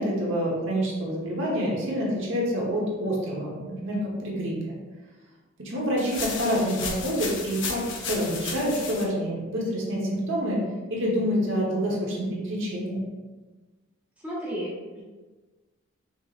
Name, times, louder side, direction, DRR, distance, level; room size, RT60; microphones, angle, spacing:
voice 1, 0.0-4.7 5.6-10.6 10.9-13.0, equal, 65° right, -4 dB, 1.1 m, -27 dB
sound 1, 6.0-9.0, left 4 dB, 60° left, 0.7 m, -34 dB
voice 2, 14.2-15.0, equal, 5° right, -6 dB, 0.7 m, -33 dB
5.4 x 3.0 x 2.5 m, 1.3 s
head